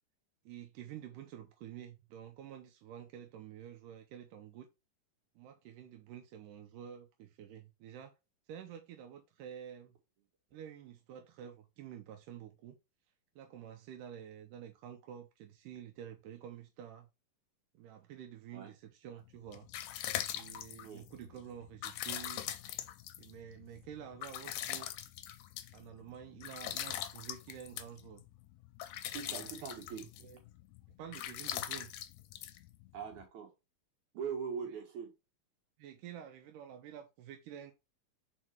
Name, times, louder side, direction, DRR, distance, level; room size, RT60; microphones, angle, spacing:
voice 1, 0.5-4.7 5.4-8.1 8.5-10.0 10.5-12.8 13.4-17.1 17.7-19.7 20.3-22.5 23.2-24.9 25.7-28.2 29.2-29.7 30.2-30.4 31.0-31.9 35.8-37.7, right 9 dB, 90° right, 2.3 m, -49 dB
sound 1, 19.3-33.2, left 12 dB, 80° left, 1.9 m, -42 dB
voice 2, 29.1-30.0 32.9-33.5 34.1-35.1, right 7 dB, 65° right, 3.0 m, -41 dB
4.9 x 4.5 x 4.4 m
omnidirectional pair, 3.7 m